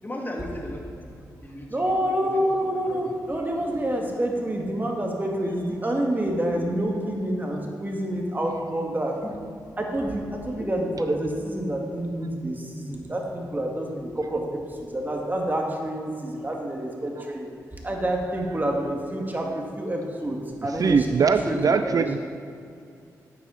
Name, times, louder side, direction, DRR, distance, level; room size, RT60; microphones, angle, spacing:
voice 1, 0.0-1.1 1.4-1.8 2.1-3.1 9.2-9.3 10.6-10.7, left 1 dB, 25° left, -1 dB, 2.2 m, -37 dB
voice 2, 1.7-9.1 9.8-14.4 14.8-17.5 17.8-22.0, right 1 dB, 25° right, 0 dB, 2.0 m, -28 dB
voice 3, 20.8-22.2, right 5 dB, 55° right, 9 dB, 0.4 m, -21 dB
9.5 x 8.5 x 4.1 m, 2.5 s
supercardioid pair, 45°, 7 cm